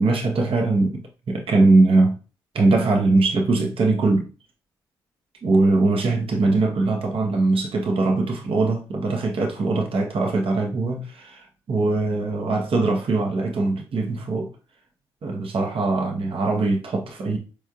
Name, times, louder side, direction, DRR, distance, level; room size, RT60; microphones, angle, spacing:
voice 1, 0.0-2.2 2.5-4.3 5.4-14.5 15.2-17.4, right 3 dB, 55° right, 0.9 m, -21 dB
4.4 x 3.2 x 2.4 m
hypercardioid pair, 40°, 11 cm